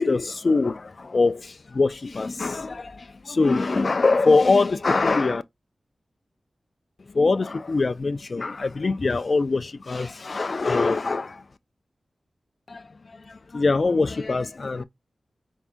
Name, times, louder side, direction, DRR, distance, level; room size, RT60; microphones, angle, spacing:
voice 1, 0.0-5.4 7.1-11.4 12.7-14.8, left 3 dB, 45° left, 0.3 m, -23 dB
4.6 x 3.5 x 2.5 m
wide cardioid pair, 115°, 0 cm